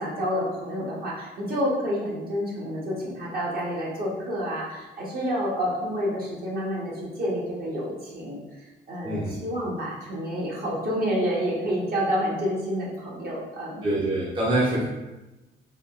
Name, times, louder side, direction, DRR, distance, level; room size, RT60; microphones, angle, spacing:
voice 1, 0.0-8.4 8.9-13.9, equal, 50° right, -5 dB, 1.0 m, -29 dB
voice 2, 13.8-14.9, right 1 dB, 25° right, -6 dB, 0.6 m, -24 dB
3.4 x 2.2 x 2.4 m, 1.1 s
cardioid pair, 90°, 20 cm